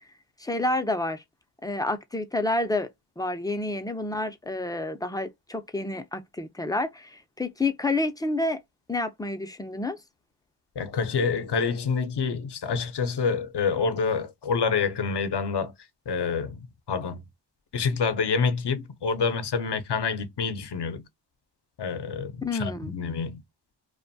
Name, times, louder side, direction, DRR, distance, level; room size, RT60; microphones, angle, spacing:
voice 1, 0.4-1.2 1.6-2.9 3.2-8.6 8.9-10.0 22.4-22.9, left 2 dB, 10° left, 0.4 m, -29 dB
voice 2, 10.8-15.7 16.1-17.2 17.7-21.0 21.8-23.4, left 5 dB, 65° left, 0.6 m, -27 dB
2.5 x 2.2 x 2.6 m
wide cardioid pair, 70°, 45 cm